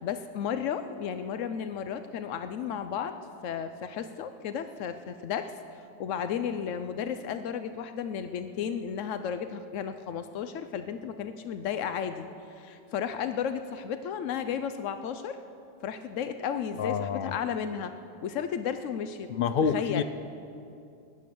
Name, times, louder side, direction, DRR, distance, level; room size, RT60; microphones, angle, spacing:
voice 1, 0.0-3.2 3.4-5.5 6.0-12.3 12.6-15.4 15.8-17.9 18.2-19.3 19.6-20.0, left 8 dB, 90° left, 9 dB, 1.0 m, -33 dB
voice 2, 16.8-17.3 19.3-20.0, left 6 dB, 60° left, 13 dB, 0.6 m, -27 dB
16.5 x 10.5 x 6.9 m, 2.6 s
omnidirectional pair, 1.3 m